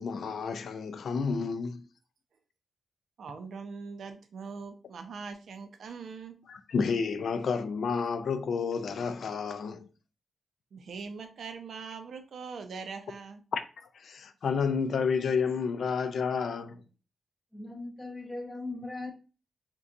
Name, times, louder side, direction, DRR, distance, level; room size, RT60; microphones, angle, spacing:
voice 1, 0.0-1.8 6.5-9.9 13.5-16.8, left 5 dB, 65° left, 0.3 m, -30 dB
voice 2, 3.2-6.4 10.7-13.4, right 5 dB, 65° right, 0.5 m, -42 dB
voice 3, 17.5-19.1, left 2 dB, 10° left, 0.7 m, -39 dB
2.6 x 2.2 x 3.7 m
wide cardioid pair, 135°, 0 cm